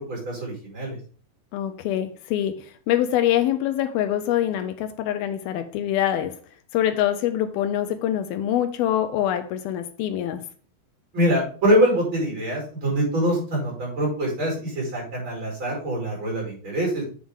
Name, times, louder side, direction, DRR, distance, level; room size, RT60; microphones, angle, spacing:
voice 1, 0.1-1.0 11.1-17.0, equal, 30° right, 5.3 m, -24 dB
voice 2, 1.5-6.4 6.7-10.5, left 11 dB, 80° left, 2.2 m, -24 dB
8.0 x 7.3 x 3.6 m
omnidirectional pair, 5.0 m